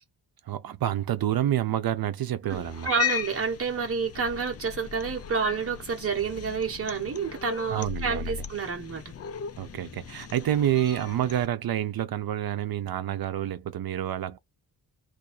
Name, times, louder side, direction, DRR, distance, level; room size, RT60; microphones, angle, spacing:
voice 1, 0.5-2.9 7.7-8.4 9.6-14.4, right 11 dB, 70° right, 0.7 m, -28 dB
Cat, 2.5-11.5, left 8 dB, 40° left, 0.4 m, -37 dB
voice 2, 2.5-9.1, right 6 dB, 35° right, 1.3 m, -29 dB
2.6 x 2.6 x 4.2 m
wide cardioid pair, 180°, 37 cm